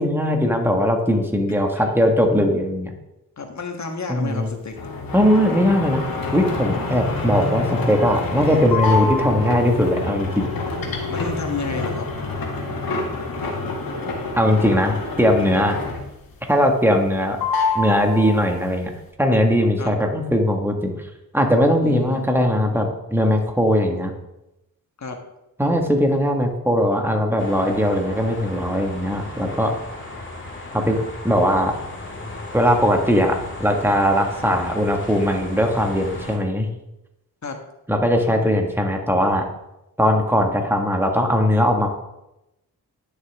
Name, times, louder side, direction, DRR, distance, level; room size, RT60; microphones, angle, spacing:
voice 1, 0.0-2.9 4.1-4.5 5.1-10.5 14.4-15.8 16.5-17.4 17.8-18.9 19.2-20.9 21.3-24.1 25.6-29.7 30.7-31.0 31.2-31.8 32.5-36.7 37.9-39.4 40.0-41.9, equal, 5° right, 2 dB, 1.7 m, -19 dB
voice 2, 3.4-4.8 11.1-12.1 19.8-19.9 21.8-22.3 25.0-25.2 37.4-37.6, left 4 dB, 45° left, 4 dB, 1.5 m, -31 dB
sound 1, 4.8-16.3 16.6-17.1 17.4-18.7, left 3 dB, 65° left, 1.8 m, -27 dB
sound 2, 27.4-36.4, left 2 dB, 30° left, 2.1 m, -36 dB
10.5 x 6.6 x 3.6 m, 0.90 s
cardioid pair, 60°, 37 cm